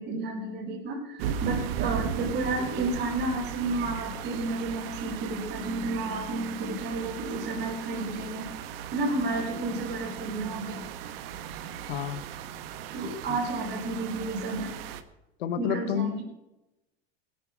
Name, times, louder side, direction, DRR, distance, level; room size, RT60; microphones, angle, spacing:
voice 1, 0.0-8.5 8.9-10.8 12.9-14.8 15.6-16.2, right 2 dB, 35° right, -2 dB, 5.1 m, -31 dB
sound 1, 1.2-15.0, right 8 dB, 65° right, 1.4 m, -37 dB
voice 2, 11.9-12.2 13.3-13.4 15.4-16.2, left 10 dB, 80° left, 11 dB, 1.3 m, -30 dB
17.5 x 9.3 x 6.2 m, 0.95 s
hypercardioid pair, 115°, 31 cm